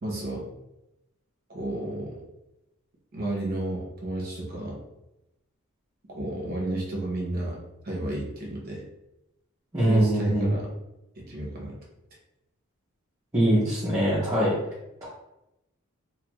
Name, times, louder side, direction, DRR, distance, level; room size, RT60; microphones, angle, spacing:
voice 1, 0.0-0.5 1.5-2.2 3.1-4.8 6.1-8.8 9.8-10.7 11.1-11.8, right 1 dB, 45° right, -2 dB, 0.8 m, -32 dB
voice 2, 9.7-10.5 13.3-14.5 15.0-15.1, right 1 dB, 15° right, -9 dB, 0.7 m, -22 dB
2.7 x 2.4 x 3.0 m, 0.91 s
head